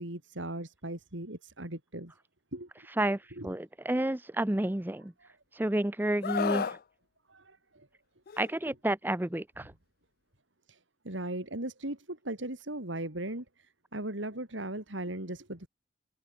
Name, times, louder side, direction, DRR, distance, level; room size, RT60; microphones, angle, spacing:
voice 1, 0.0-2.1 2.5-2.7 3.4-3.5 5.2-5.3 7.3-7.9 10.7-10.8 11.0-13.4 13.9-15.7, right 1 dB, 85° right, 4.3 m, -38 dB
voice 2, 2.9-5.1 5.5-6.8 8.4-9.7, right 1 dB, 10° right, 0.6 m, -30 dB
Screaming, 6.2-6.8 8.3-8.5, left 6 dB, 50° left, 0.4 m, -31 dB
head